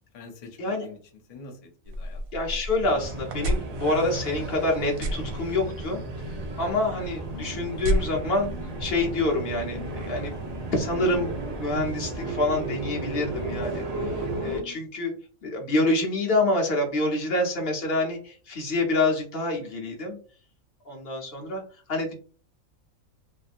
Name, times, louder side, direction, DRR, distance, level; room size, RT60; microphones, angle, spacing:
voice 1, 0.1-1.0 1.3-2.2 14.2-14.8, left 5 dB, 70° left, 1 dB, 0.3 m, -45 dB
sound 1, 1.9-12.0, right 1 dB, 85° right, 1.0 m, -35 dB
voice 2, 2.3-6.0 6.6-8.5 8.8-10.3 10.7-15.1 15.4-20.2 20.8-21.6 21.9-22.1, left 2 dB, 50° left, 0 dB, 1.0 m, -27 dB
sound 2, 2.8-14.6, right 2 dB, 55° right, 0.4 m, -34 dB
sound 3, 7.3-13.8, left 5 dB, 90° left, 1.4 m, -46 dB
2.7 x 2.6 x 2.5 m, 0.40 s
omnidirectional pair, 1.5 m